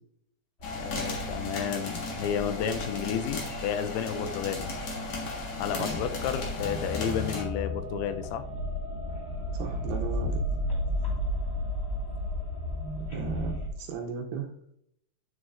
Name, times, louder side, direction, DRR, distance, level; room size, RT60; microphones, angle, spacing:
sound 1, 0.6-7.4, left 3 dB, 55° left, 1.8 m, -36 dB
sound 2, 0.6-13.7, left 1 dB, 35° left, 0.9 m, -34 dB
voice 1, 0.8-4.7 5.6-8.5, left 8 dB, 90° left, 9 dB, 2.7 m, -32 dB
voice 2, 9.5-10.4 13.1-14.5, right 7 dB, 80° right, 3 dB, 2.1 m, -36 dB
9.3 x 6.4 x 2.5 m, 0.70 s
omnidirectional pair, 4.5 m